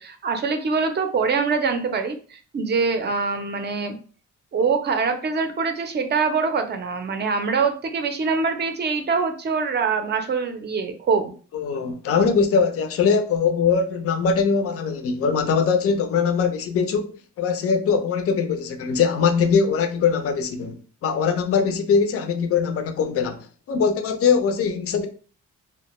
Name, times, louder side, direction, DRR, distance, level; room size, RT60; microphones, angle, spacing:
voice 1, 0.0-3.9 4.5-11.3, right 5 dB, 35° right, 0.5 m, -24 dB
voice 2, 11.5-25.1, left 6 dB, 50° left, 0.5 m, -22 dB
2.1 x 2.1 x 2.9 m
cardioid pair, 90°, 30 cm